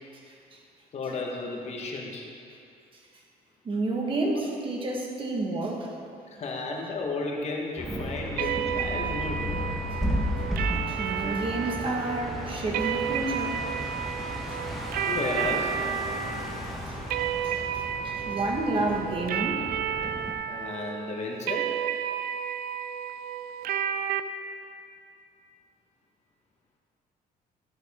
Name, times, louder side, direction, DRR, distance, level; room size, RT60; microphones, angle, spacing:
voice 1, 0.9-2.3 4.2-4.4 4.9-5.0 6.3-9.5 15.1-15.7 20.5-21.7, left 3 dB, 45° left, 0 dB, 1.3 m, -33 dB
voice 2, 3.6-5.9 10.6-13.7 14.5-14.6 16.9-17.0 17.4-17.7 18.0-19.7, right 2 dB, 35° right, 0 dB, 1.4 m, -30 dB
sound 1, 7.8-20.3, equal, ahead, 1.3 m, -34 dB
sound 2, 8.4-24.2, right 9 dB, 70° right, 0.5 m, -32 dB
13.0 x 8.9 x 3.6 m, 2.4 s
cardioid pair, 155°, 16 cm